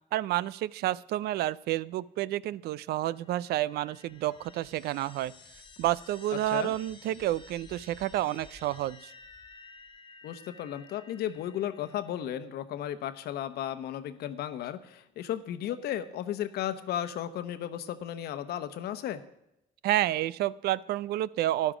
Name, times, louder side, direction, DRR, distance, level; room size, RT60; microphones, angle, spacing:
voice 1, 0.1-5.3 5.8-9.1 19.8-21.7, right 14 dB, 70° right, 21 dB, 0.4 m, -30 dB
sound 1, 3.1-12.4, left 4 dB, 30° left, 1.3 m, -53 dB
voice 2, 10.2-19.2, left 11 dB, 70° left, 11 dB, 1.0 m, -34 dB
13.0 x 11.0 x 5.0 m, 0.84 s
cardioid pair, 110°, 17 cm